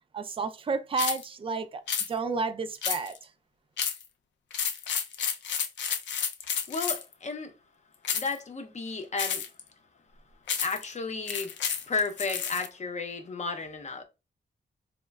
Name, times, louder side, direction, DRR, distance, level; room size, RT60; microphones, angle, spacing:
voice 1, 0.1-1.8 2.1-3.3, right 4 dB, 30° right, 0.4 m, -31 dB
sound 1, 1.0-1.3 1.9-2.1 2.8-3.2 3.8-4.1 4.5-7.1 8.0-8.4 9.2-9.6 10.5-10.8 11.3-12.7, left 7 dB, 80° left, 0.4 m, -31 dB
voice 2, 6.7-7.5 8.1-9.5 10.6-11.5 11.9-14.0, left 4 dB, 40° left, 0.6 m, -33 dB
3.9 x 2.1 x 2.2 m
cardioid pair, 90°, 19 cm